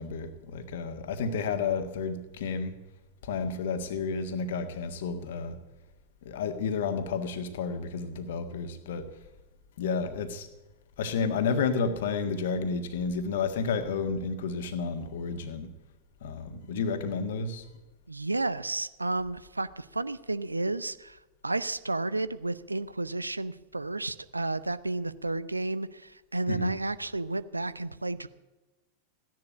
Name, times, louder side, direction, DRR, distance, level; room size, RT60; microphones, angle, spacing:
voice 1, 0.0-2.7 3.2-5.6 6.2-9.1 9.8-10.5 11.0-15.7 16.2-17.6 26.5-26.7, left 5 dB, 55° left, 9 dB, 1.6 m, -31 dB
voice 2, 18.1-28.3, right 2 dB, 80° right, 16 dB, 0.6 m, -32 dB
15.5 x 10.5 x 8.4 m, 1.1 s
figure-of-eight pair, 90°, 0 cm